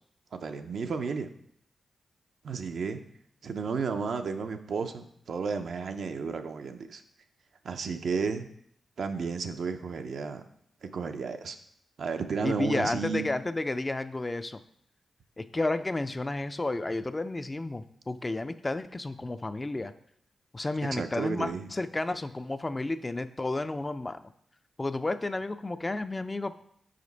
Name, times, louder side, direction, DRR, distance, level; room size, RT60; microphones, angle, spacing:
voice 1, 0.4-1.3 2.4-3.0 3.4-7.0 7.6-8.5 9.0-10.4 10.8-11.6 12.0-13.3 20.9-21.7, right 5 dB, 70° right, 7 dB, 0.5 m, -32 dB
voice 2, 12.4-14.6 15.4-19.9 20.5-24.2 24.8-26.5, left 2 dB, 30° left, 11 dB, 0.4 m, -31 dB
5.1 x 5.0 x 4.0 m, 0.68 s
supercardioid pair, 45°, 0 cm